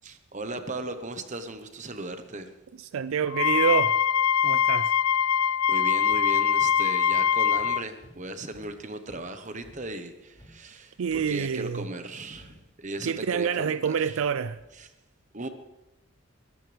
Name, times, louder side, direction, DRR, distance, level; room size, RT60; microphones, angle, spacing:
voice 1, 0.0-2.5 5.7-14.2 14.8-14.9 15.3-15.5, right 2 dB, 35° right, 1.2 m, -37 dB
voice 2, 2.8-4.0 4.4-5.0 11.0-11.9 13.1-14.6, right 7 dB, 75° right, 0.4 m, -27 dB
Wind instrument woodwind instrument, 3.3-7.8, left 8 dB, 80° left, 0.4 m, -23 dB
sound 1, 6.1-6.7 7.1-7.3 7.5-7.7 8.0-8.2 8.5-8.7 9.1-9.3 9.6-9.9 10.2-11.3 12.3-12.5 12.9-13.1 13.4-14.7, equal, 20° left, 5.7 m, -54 dB
21.5 x 15.5 x 3.5 m
head